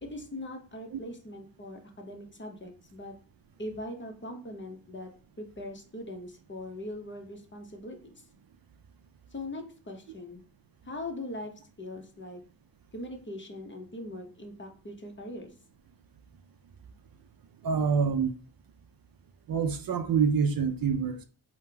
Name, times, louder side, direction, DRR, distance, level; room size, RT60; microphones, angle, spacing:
voice 1, 0.0-3.1 3.6-5.1 5.4-8.0 9.3-10.4 10.8-11.5 11.8-12.4 12.9-15.5, left 1 dB, 25° left, 0.8 m, -41 dB
voice 2, 17.6-18.4 19.5-21.2, right 6 dB, 50° right, 0.5 m, -26 dB
3.5 x 2.2 x 2.8 m
supercardioid pair, 45°, 45 cm